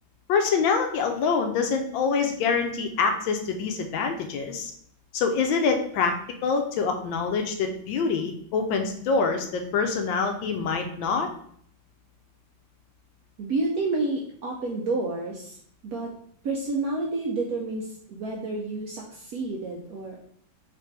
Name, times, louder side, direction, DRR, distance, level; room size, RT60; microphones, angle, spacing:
voice 1, 0.3-4.7 5.1-6.1 6.4-11.3, left 5 dB, 80° left, 5 dB, 1.3 m, -25 dB
voice 2, 13.4-15.6 15.8-16.1 16.4-20.2, right 3 dB, 70° right, -2 dB, 0.9 m, -29 dB
4.1 x 3.3 x 3.2 m, 0.63 s
omnidirectional pair, 2.2 m